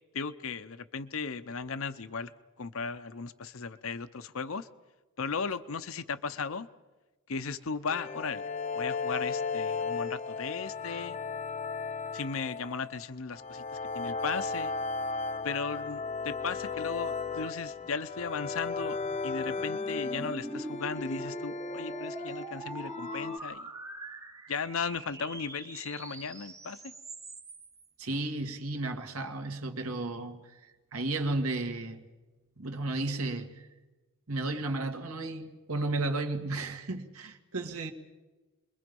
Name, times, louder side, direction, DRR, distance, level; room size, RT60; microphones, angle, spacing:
voice 1, 0.1-2.3 2.6-4.7 5.2-6.7 7.3-8.4 8.7-11.2 12.1-13.6 13.9-14.7 15.4-19.0 19.2-23.7 24.5-26.9, left 5 dB, 70° left, 0.8 m, -36 dB
sound 1, 7.9-23.4, left 4 dB, 30° left, 0.7 m, -35 dB
sound 2, 18.1-27.9, right 2 dB, 15° right, 0.7 m, -44 dB
voice 2, 28.0-32.0 32.6-33.7 34.3-37.9, right 2 dB, 80° right, 2.0 m, -33 dB
29.5 x 22.5 x 5.4 m
head